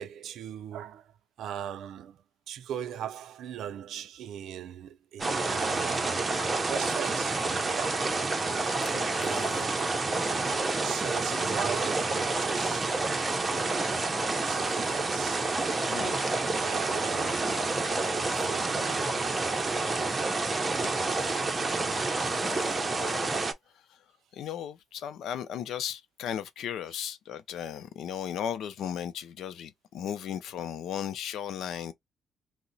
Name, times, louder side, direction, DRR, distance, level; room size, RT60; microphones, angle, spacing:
voice 1, 0.0-6.3 6.6-8.1 9.2-9.8 10.8-15.5 16.6-17.6 18.2-19.2, right 9 dB, 75° right, 0.4 m, -40 dB
sound 1, 5.2-23.5, right 3 dB, 25° right, 0.7 m, -29 dB
voice 2, 8.9-9.7 14.5-14.7 15.9-16.2 21.1-21.5 22.4-23.4 24.3-31.9, left 9 dB, 75° left, 0.5 m, -36 dB
2.8 x 2.1 x 3.9 m
cardioid pair, 90°, 0 cm